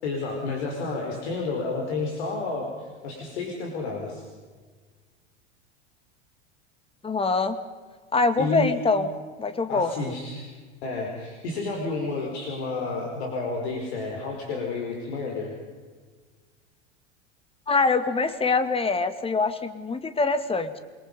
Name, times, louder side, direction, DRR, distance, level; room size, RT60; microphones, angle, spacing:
voice 1, 0.0-4.3 8.4-8.7 9.7-10.5 10.8-15.5, left 3 dB, 75° left, 1 dB, 4.9 m, -30 dB
voice 2, 7.0-7.6 8.1-9.1 9.4-10.1 17.7-20.8, left 4 dB, 15° left, 10 dB, 2.2 m, -24 dB
28.0 x 22.5 x 5.5 m, 1.5 s
hypercardioid pair, 95°, 33 cm